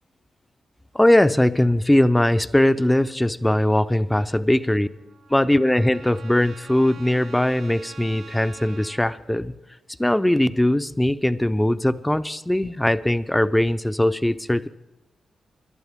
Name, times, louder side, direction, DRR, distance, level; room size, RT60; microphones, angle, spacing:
voice 1, 0.9-4.9 5.3-9.5 10.0-14.7, left 1 dB, 10° left, 13 dB, 0.6 m, -20 dB
Trumpet, 4.7-9.2, right 6 dB, 80° right, 1.2 m, -46 dB
21.0 x 11.0 x 3.6 m, 1.0 s
supercardioid pair, 45°, 0 cm